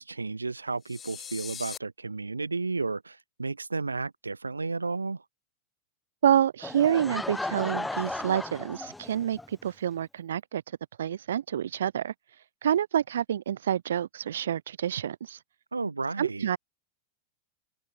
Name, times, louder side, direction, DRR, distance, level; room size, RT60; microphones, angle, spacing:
voice 1, 0.0-5.2 15.7-16.5, right 3 dB, 80° right, 1.7 m, -32 dB
sound 1, 0.8-1.8, left 8 dB, 25° left, 5.1 m, -40 dB
voice 2, 6.2-15.4 16.2-16.6, right 9 dB, 65° right, 1.4 m, -28 dB
Laughter / Crowd, 6.6-9.5, left 2 dB, 5° left, 2.7 m, -35 dB
figure-of-eight pair, 90°, 0 cm